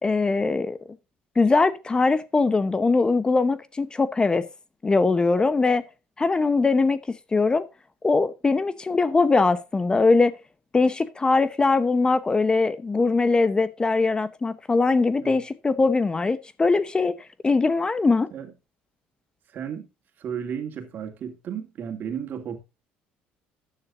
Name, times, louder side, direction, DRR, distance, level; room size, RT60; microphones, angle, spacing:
voice 1, 0.0-0.8 1.4-4.5 4.8-5.8 6.2-7.0 7.3-7.6 8.0-10.3 10.7-17.2 17.4-18.3, left 3 dB, 20° left, 0.8 m, -21 dB
voice 2, 19.5-19.9 20.2-22.6, right 8 dB, 50° right, 2.5 m, -33 dB
13.5 x 9.9 x 2.6 m
supercardioid pair, 95°, 4 cm